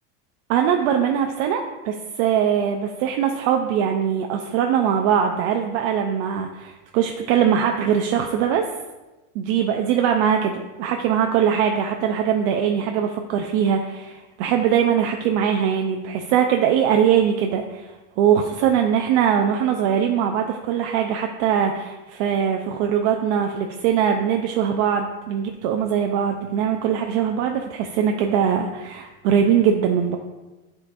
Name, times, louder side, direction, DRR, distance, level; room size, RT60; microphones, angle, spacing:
voice 1, 0.5-8.7 9.3-30.2, right 8 dB, 60° right, 3 dB, 0.5 m, -21 dB
10.5 x 3.9 x 2.5 m, 1.1 s
cardioid pair, 160°, 38 cm